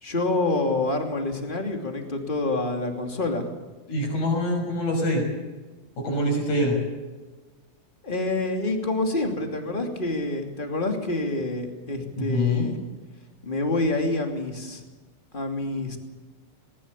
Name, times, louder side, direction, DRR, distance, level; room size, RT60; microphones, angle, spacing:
voice 1, 0.0-3.5 8.0-12.8 13.4-14.8 15.3-16.0, left 2 dB, 15° left, 4 dB, 2.4 m, -27 dB
voice 2, 3.9-5.2 6.0-6.8 12.2-12.7, left 1 dB, 55° left, 1 dB, 7.7 m, -24 dB
20.0 x 20.0 x 8.4 m, 1.3 s
omnidirectional pair, 4.0 m